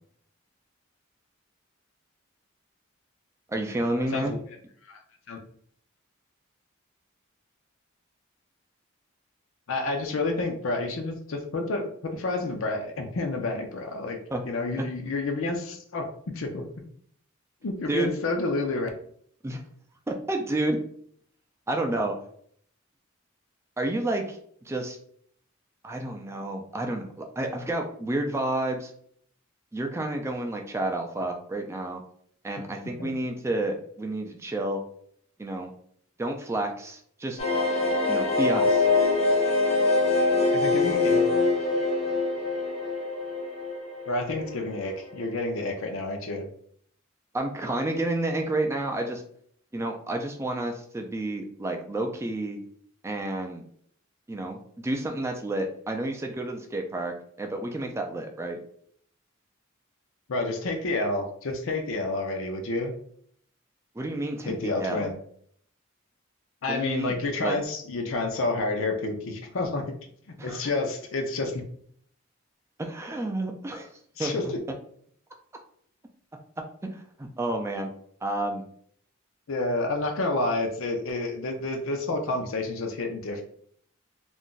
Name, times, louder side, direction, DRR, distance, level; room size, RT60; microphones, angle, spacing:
voice 1, 3.5-4.3 14.3-14.4 17.9-18.1 19.4-19.6 20.1-20.8 21.7-22.2 23.8-24.4 24.7-25.0 25.8-28.9 29.7-32.0 32.4-34.8 35.4-35.7 36.2-37.4 38.1-38.9 47.3-49.2 49.7-52.6 53.0-53.6 54.3-58.6 64.0-65.1 66.7-67.6 70.4-70.6 72.8-73.9 74.2-74.5 76.8-77.9 78.2-78.6, right 1 dB, 15° right, 3 dB, 0.3 m, -30 dB
voice 2, 9.7-14.2 14.5-16.1 16.3-16.6 17.6-18.9 32.8-33.1 40.5-41.4 44.1-46.5 60.3-62.9 64.4-65.2 66.6-69.8 70.4-71.6 74.2-74.6 79.5-83.4, left 2 dB, 85° left, 4 dB, 0.6 m, -29 dB
sound 1, 37.4-44.9 45.1-45.2 45.5-45.6, left 3 dB, 35° left, 0.7 m, -24 dB
2.5 x 2.2 x 3.7 m, 0.63 s
head